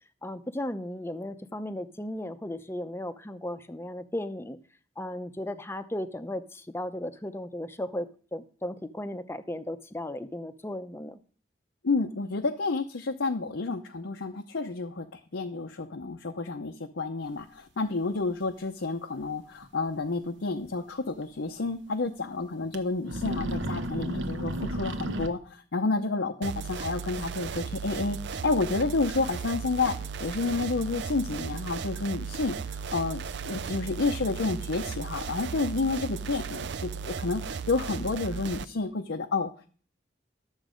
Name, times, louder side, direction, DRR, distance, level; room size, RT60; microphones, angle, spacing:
voice 1, 0.2-4.6 5.0-11.2, left 1 dB, 15° left, 11 dB, 0.7 m, -36 dB
voice 2, 11.8-29.9 30.2-39.7, left 3 dB, 75° left, 4 dB, 0.7 m, -30 dB
sound 1, 19.2-19.3 19.6-19.7 21.2-21.3 21.6-21.7 22.6-22.8 23.0-25.3, right 1 dB, 75° right, 1.0 m, -32 dB
sound 2, 26.4-38.7, right 6 dB, 60° right, 0.5 m, -36 dB
12.0 x 7.3 x 5.1 m, 0.41 s
head